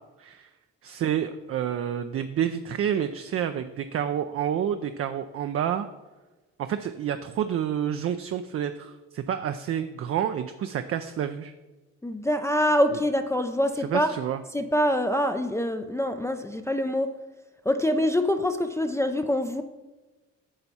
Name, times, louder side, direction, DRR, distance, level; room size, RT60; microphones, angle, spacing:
voice 1, 0.2-0.5 0.8-5.9 6.6-11.5 13.9-14.4, right 9 dB, 50° right, 8 dB, 0.4 m, -29 dB
voice 2, 12.0-14.1 14.5-17.1 17.7-19.6, equal, 10° left, 6 dB, 0.4 m, -25 dB
8.8 x 5.4 x 4.2 m, 1.2 s
cardioid pair, 90°, 30 cm